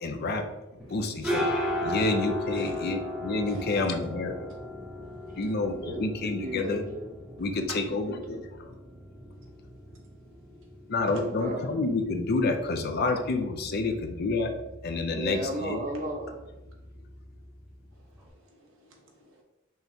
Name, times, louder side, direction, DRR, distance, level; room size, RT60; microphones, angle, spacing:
voice 1, 0.0-0.5 0.9-1.6 1.8-4.5 5.3-6.8 7.4-8.7 10.9-14.5 14.8-15.8, left 3 dB, 50° left, 5 dB, 0.5 m, -29 dB
sound 1, 0.8-18.3, left 1 dB, 5° right, 0.7 m, -37 dB
voice 2, 2.5-2.9 3.5-3.6 7.7-7.8 11.1-11.2 17.9-19.4, right 2 dB, 70° right, -1 dB, 1.1 m, -48 dB
voice 3, 5.8-7.2 7.9-8.5 11.1-12.0 15.1-16.5, right 1 dB, 40° right, 2 dB, 0.7 m, -36 dB
5.6 x 3.2 x 2.7 m, 0.98 s
head